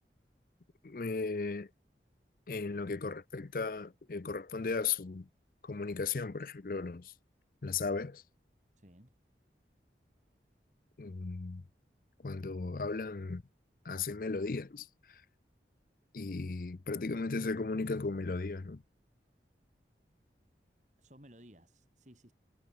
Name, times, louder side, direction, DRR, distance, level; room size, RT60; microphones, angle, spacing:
voice 1, 0.8-1.7 2.5-5.3 5.6-7.1 7.6-8.2 11.0-11.6 12.2-13.4 13.8-15.2 16.1-18.8, left 4 dB, 50° left, 0.6 m, -36 dB
voice 2, 8.8-9.1 21.0-22.3, equal, 40° right, 6.5 m, -58 dB
head